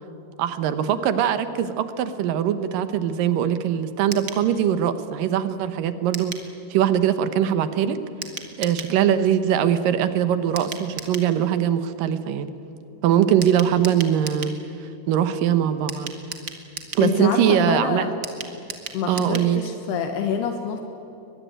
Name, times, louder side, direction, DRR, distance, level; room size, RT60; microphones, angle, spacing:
voice 1, 0.4-6.4 6.7-8.0 8.6-12.5 13.0-14.6 14.8-16.1 17.0-18.1 19.1-19.6, right 9 dB, 70° right, 11 dB, 2.4 m, -22 dB
sound 1, 4.1-4.4 6.1-6.5 8.2-8.9 10.6-11.3 13.4-14.6 15.9-17.1 18.2-19.5 19.8-19.9 20.2-20.3, right 5 dB, 50° right, 1.2 m, -36 dB
voice 2, 17.0-18.1 18.9-20.8, left 7 dB, 75° left, 5 dB, 3.3 m, -26 dB
22.5 x 21.5 x 9.2 m, 2.9 s
omnidirectional pair, 4.8 m